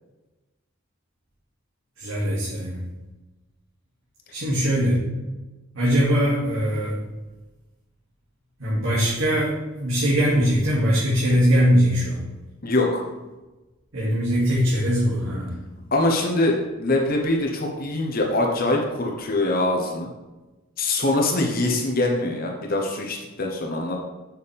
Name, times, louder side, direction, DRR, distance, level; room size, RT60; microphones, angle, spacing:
voice 1, 2.0-2.8 4.3-5.0 5.7-7.0 8.6-12.2 13.9-15.5, equal, 75° right, -8 dB, 2.4 m, -21 dB
voice 2, 12.6-13.0 15.9-20.1 20.8-24.0, left 2 dB, 45° left, 0 dB, 1.1 m, -23 dB
7.7 x 6.8 x 3.5 m, 1.1 s
head